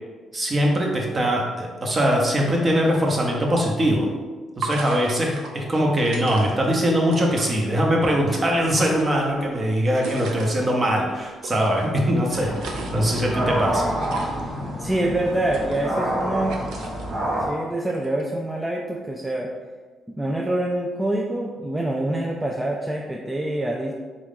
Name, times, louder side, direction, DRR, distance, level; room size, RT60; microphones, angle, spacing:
voice 1, 0.3-4.1 4.6-12.5 12.9-13.8, equal, 30° right, 0 dB, 0.9 m, -21 dB
sound 1, 3.6-3.7 4.6-6.7 7.0-7.5 8.5-10.5 11.4-11.9 12.3-13.2 14.0-14.5 15.3-16.2 16.5-17.2 17.9-18.2, right 3 dB, 85° right, 0.5 m, -36 dB
sound 2, 12.3-17.5, right 1 dB, 50° right, 1.1 m, -28 dB
voice 2, 14.8-16.6 17.5-19.5 20.1-23.9, right 1 dB, 10° right, -1 dB, 0.4 m, -26 dB
3.8 x 3.0 x 3.6 m, 1.4 s
cardioid pair, 90°, 0 cm